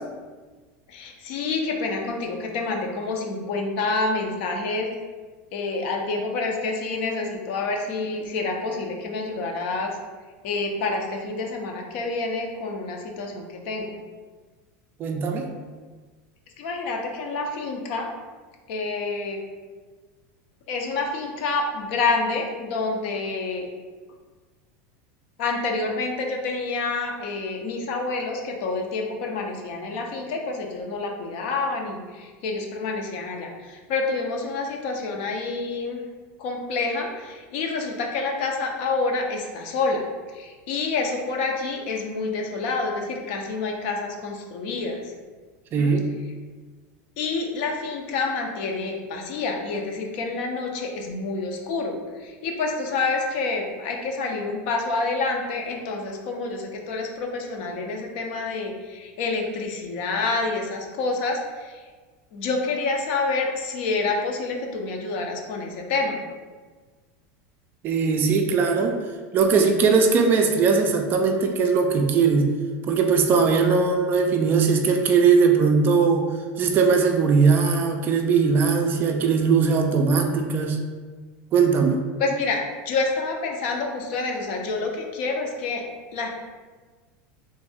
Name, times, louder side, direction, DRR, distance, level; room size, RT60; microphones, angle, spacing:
voice 1, 0.9-4.9 5.5-10.0 10.4-14.0 16.6-18.1 18.7-19.4 20.7-23.7 25.4-36.0 36.4-45.1 45.8-45.9 47.2-61.9 62.3-66.2 82.2-85.8 86.1-86.3, left 3 dB, 60° left, 2 dB, 0.6 m, -28 dB
voice 2, 15.0-15.5 45.7-46.0 67.8-69.0 69.3-72.5 72.9-76.3 76.6-80.8 81.5-82.0, right 5 dB, 30° right, 4 dB, 0.3 m, -20 dB
3.2 x 2.6 x 3.5 m, 1.4 s
supercardioid pair, 150°, 7 cm